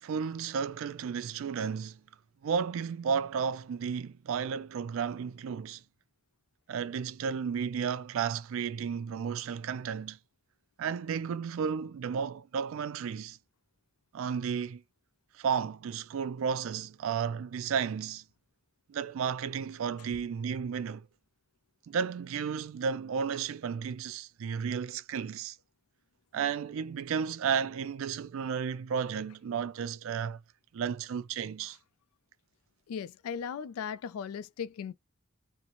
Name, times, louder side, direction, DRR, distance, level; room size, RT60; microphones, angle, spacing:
voice 1, 0.0-2.0 2.4-5.8 6.7-10.2 10.8-13.4 14.1-14.8 15.4-18.2 18.9-21.1 21.9-25.6 26.3-30.4 30.7-31.8, right 6 dB, 70° right, 0.3 m, -33 dB
voice 2, 32.9-34.9, left 7 dB, 90° left, 0.3 m, -37 dB
2.8 x 2.1 x 2.5 m
head